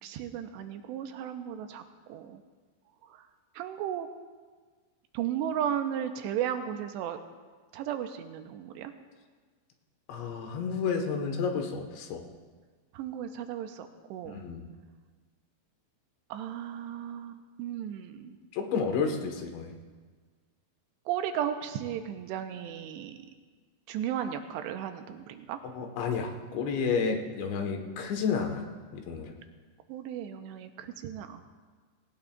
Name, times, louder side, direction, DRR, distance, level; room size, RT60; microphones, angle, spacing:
voice 1, 0.0-2.4 3.1-3.2 3.6-4.1 5.1-7.2 7.7-8.9 12.9-14.4 16.3-18.4 21.1-23.2 23.9-25.6 29.9-31.4, right 9 dB, 90° right, 7 dB, 2.9 m, -35 dB
voice 2, 10.1-12.2 14.3-14.6 18.5-19.7 25.6-28.6 28.9-29.3, left 5 dB, 85° left, 3 dB, 3.6 m, -31 dB
19.5 x 18.0 x 2.4 m, 1.5 s
omnidirectional pair, 5.0 m